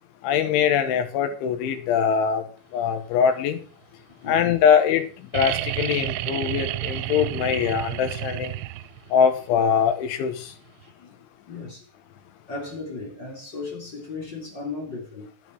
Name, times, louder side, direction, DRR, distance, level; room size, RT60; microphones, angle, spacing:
voice 1, 0.2-2.4 2.7-3.6 4.3-5.0 5.3-8.5 9.1-10.5, left 7 dB, 90° left, 3.8 m, -22 dB
voice 2, 4.1-4.6 10.8-11.1 11.5-11.9 12.5-15.3, left 3 dB, 25° left, 3.1 m, -36 dB
sound 1, 5.3-9.1 10.8-10.9, right 16 dB, 85° right, 2.9 m, -30 dB
11.5 x 8.0 x 4.7 m
omnidirectional pair, 5.3 m